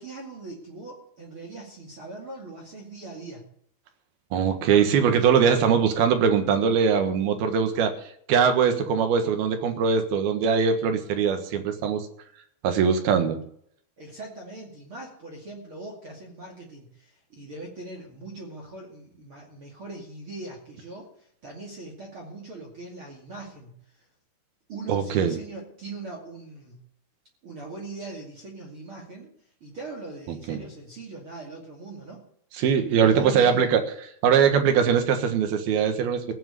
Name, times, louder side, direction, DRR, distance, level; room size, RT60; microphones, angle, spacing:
voice 1, 0.0-3.4 14.0-24.0 24.7-26.8 27.4-29.3 29.6-32.3 33.0-33.7, right 3 dB, 35° right, -1 dB, 2.4 m, -41 dB
voice 2, 4.3-7.9 8.3-12.1 12.6-13.4 24.9-25.4 30.5-30.6 32.5-33.8 34.2-36.3, right 7 dB, 65° right, 6 dB, 3.1 m, -21 dB
17.0 x 6.1 x 9.5 m, 0.66 s
omnidirectional pair, 5.3 m